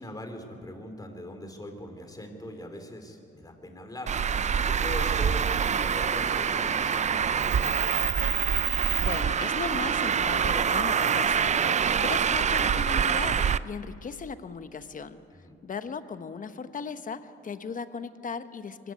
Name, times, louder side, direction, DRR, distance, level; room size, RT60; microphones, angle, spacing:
voice 1, 0.0-4.1 4.6-7.9 15.3-15.5, equal, 20° left, 5 dB, 3.6 m, -41 dB
Traffic noise roadway noise, 4.1-13.6, right 7 dB, 35° right, 0.5 m, -25 dB
voice 2, 8.7-18.9, left 5 dB, 40° left, 11 dB, 1.1 m, -37 dB
23.0 x 15.0 x 9.5 m, 2.5 s
cardioid pair, 90°, 20 cm